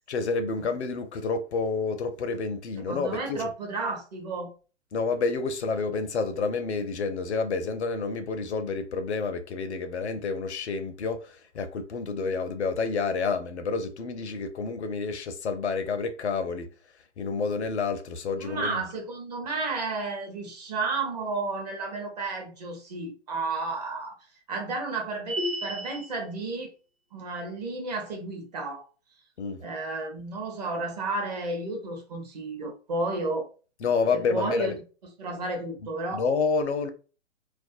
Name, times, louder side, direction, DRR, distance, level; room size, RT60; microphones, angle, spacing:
voice 1, 0.1-3.4 4.9-16.7 17.2-18.8 29.4-29.6 33.8-34.8 36.1-36.9, left 4 dB, 70° left, 0.5 m, -29 dB
voice 2, 2.8-4.5 18.4-24.1 24.5-26.7 27.1-28.8 29.6-33.5 34.1-34.7 35.2-36.2, right 3 dB, 35° right, 0.7 m, -32 dB
sound 1, 25.3-26.1, equal, 15° left, 0.4 m, -31 dB
2.3 x 2.0 x 2.6 m
figure-of-eight pair, 130°, 35 cm